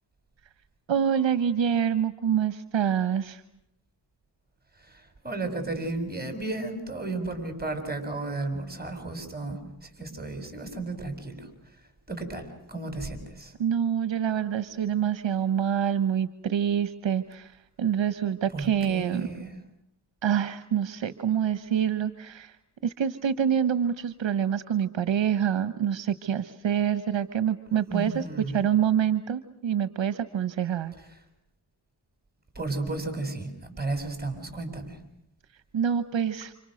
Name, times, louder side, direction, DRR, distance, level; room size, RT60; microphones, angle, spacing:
voice 1, 0.9-3.4 13.6-19.3 20.2-22.6 22.8-28.2 28.5-30.9 35.7-36.5, right 8 dB, 70° right, 13 dB, 1.2 m, -26 dB
voice 2, 4.8-11.8 12.1-13.5 18.5-19.5 27.9-28.7 32.6-35.0, right 2 dB, 20° right, 7 dB, 7.0 m, -34 dB
29.5 x 28.0 x 6.5 m, 0.76 s
cardioid pair, 65°, 46 cm